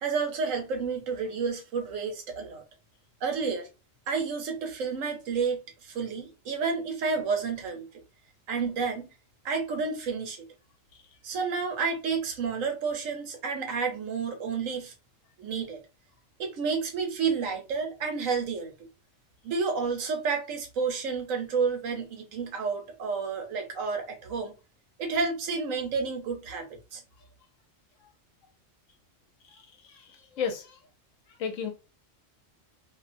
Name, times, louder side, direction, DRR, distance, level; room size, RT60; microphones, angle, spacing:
voice 1, 0.0-2.6 3.2-3.7 4.1-8.0 8.5-9.1 9.4-10.5 11.2-14.9 15.4-15.8 16.4-18.9 19.4-24.5 25.0-27.0, right 5 dB, 85° right, 1.2 m, -30 dB
voice 2, 29.4-30.8 31.3-31.7, left 6 dB, 75° left, 1.0 m, -35 dB
2.8 x 2.2 x 2.5 m
omnidirectional pair, 1.3 m